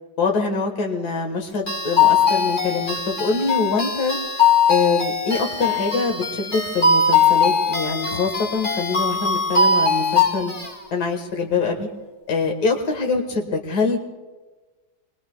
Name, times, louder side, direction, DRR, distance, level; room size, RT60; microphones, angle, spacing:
voice 1, 0.2-4.2 4.7-10.5 10.9-11.9 12.3-14.0, left 4 dB, 65° left, 2 dB, 2.1 m, -24 dB
sound 1, 1.7-10.7, left 5 dB, 30° left, 1.3 m, -20 dB
27.5 x 22.0 x 2.4 m, 1.3 s
omnidirectional pair, 1.9 m